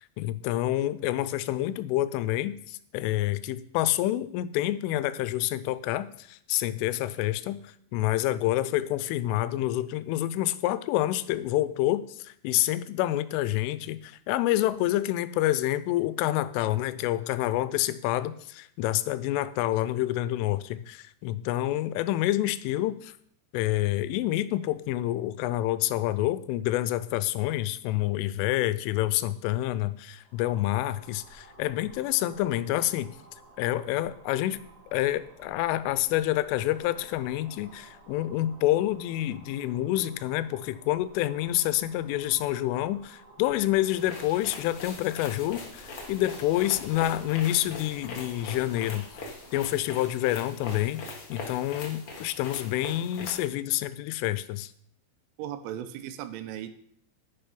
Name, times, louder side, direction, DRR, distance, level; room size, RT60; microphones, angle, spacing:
voice 1, 0.2-23.1 23.5-33.2 33.6-34.6 34.9-49.0 49.5-54.7, left 14 dB, 90° left, 15 dB, 3.2 m, -28 dB
sound 1, 30.1-50.0, right 2 dB, 45° right, 4.6 m, -54 dB
sound 2, 43.9-53.5, left 3 dB, 60° left, 1.4 m, -42 dB
voice 2, 55.4-56.7, right 11 dB, 85° right, 11 dB, 3.3 m, -37 dB
10.0 x 10.0 x 5.2 m, 0.65 s
omnidirectional pair, 5.6 m